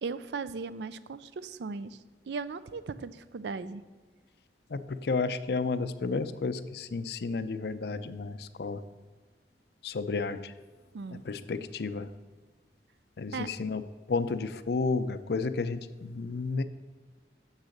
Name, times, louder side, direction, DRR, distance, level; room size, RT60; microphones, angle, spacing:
voice 1, 0.0-3.8 10.9-11.2 13.3-13.5, right 4 dB, 70° right, 15 dB, 0.4 m, -37 dB
voice 2, 4.7-8.8 9.8-10.5 11.1-12.1 13.2-13.8 14.1-16.6, left 4 dB, 60° left, 12 dB, 0.5 m, -32 dB
7.3 x 6.5 x 6.5 m, 1.5 s
head